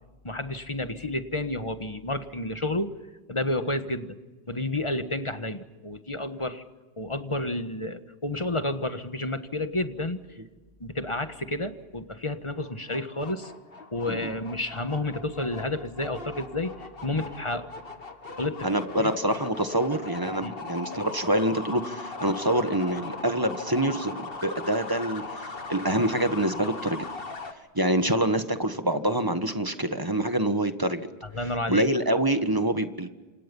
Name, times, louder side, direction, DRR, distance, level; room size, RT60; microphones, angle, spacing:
voice 1, 0.2-2.9 3.3-4.2 4.5-6.6 7.0-10.4 10.8-13.5 13.9-17.7 18.4-18.7 19.0-19.1 20.4-20.5 31.3-31.9, left 2 dB, 30° left, 9 dB, 1.5 m, -30 dB
sound 1, 12.6-27.5, left 3 dB, 60° left, 2.0 m, -39 dB
voice 2, 18.6-27.0 27.7-31.1 31.7-33.1, right 1 dB, 20° right, 8 dB, 1.5 m, -26 dB
29.0 x 27.5 x 5.5 m, 1.2 s
omnidirectional pair, 1.1 m